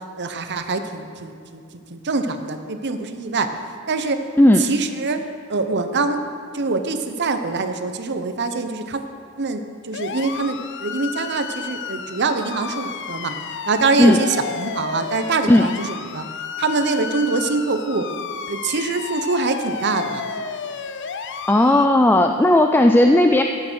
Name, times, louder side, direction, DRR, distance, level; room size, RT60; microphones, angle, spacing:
voice 1, 0.2-1.6 1.9-3.5 3.9-4.2 4.6-5.2 5.5-6.2 6.5-9.0 9.4-13.3 13.7-16.2 16.6-18.1 18.5-20.3, right 3 dB, 50° right, 7 dB, 0.8 m, -24 dB
voice 2, 4.4-4.7 14.0-14.2 15.5-15.7 21.5-23.4, left 1 dB, 10° left, 5 dB, 0.3 m, -14 dB
sound 1, 9.9-21.9, left 6 dB, 55° left, 0.6 m, -32 dB
13.5 x 8.7 x 6.3 m, 2.3 s
head